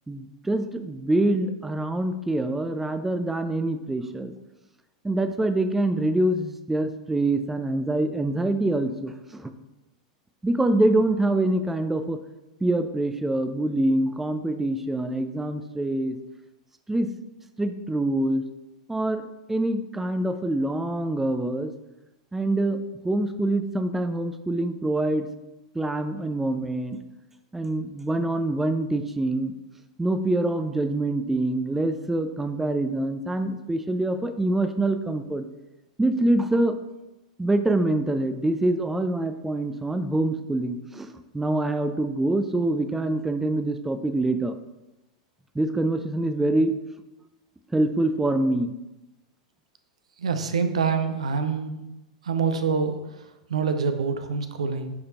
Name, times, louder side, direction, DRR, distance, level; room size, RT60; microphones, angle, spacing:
voice 1, 0.1-4.3 5.0-9.5 10.4-12.2 12.6-16.2 16.9-17.1 17.6-18.4 18.9-21.7 22.3-25.3 25.7-27.0 27.5-29.5 30.0-35.5 36.0-36.8 37.4-44.6 45.5-46.8 47.7-48.7, right 1 dB, 5° right, 9 dB, 0.4 m, -25 dB
voice 2, 50.2-51.8 52.2-54.9, right 5 dB, 70° right, 8 dB, 0.7 m, -26 dB
9.5 x 5.0 x 2.9 m, 0.98 s
figure-of-eight pair, 95°, 4 cm